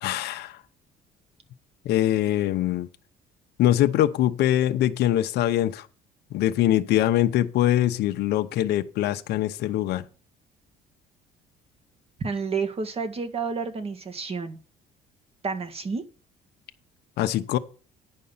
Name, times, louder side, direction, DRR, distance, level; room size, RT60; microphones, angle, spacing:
voice 1, 0.0-0.6 1.8-2.9 3.6-5.9 6.3-10.0 17.2-17.6, left 13 dB, 75° left, 0.8 m, -23 dB
voice 2, 12.2-14.6 15.4-16.0, right 5 dB, 35° right, 1.8 m, -30 dB
10.5 x 5.5 x 7.2 m
cardioid pair, 110°, 17 cm